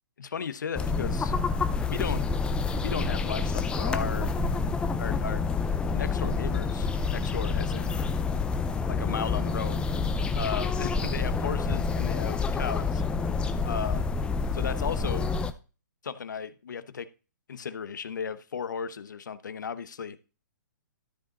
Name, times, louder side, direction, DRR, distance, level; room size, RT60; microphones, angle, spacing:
voice 1, 0.2-1.3 1.9-2.2 2.8-4.3 5.0-5.4 5.9-8.0 8.9-9.8 10.4-13.0 13.6-14.0 14.5-15.3 16.0-17.1 17.5-20.2, left 6 dB, 80° left, 14 dB, 0.9 m, -35 dB
sound 1, 0.7-15.5, left 4 dB, 10° left, 0.6 m, -28 dB
13.0 x 5.2 x 4.0 m, 0.34 s
hypercardioid pair, 140°, 10 cm